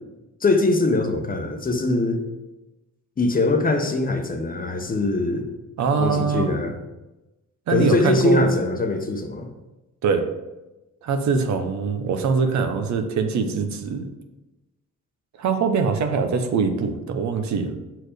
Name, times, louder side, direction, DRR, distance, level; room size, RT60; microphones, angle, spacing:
voice 1, 0.4-2.3 3.2-5.5 6.0-6.7 7.7-9.5, left 2 dB, 30° left, 5 dB, 0.9 m, -22 dB
voice 2, 5.8-6.5 7.7-8.5 10.0-10.2 11.0-14.1 15.4-17.7, right 5 dB, 65° right, 6 dB, 0.9 m, -23 dB
6.5 x 4.5 x 5.1 m, 1.0 s
cardioid pair, 90°, 30 cm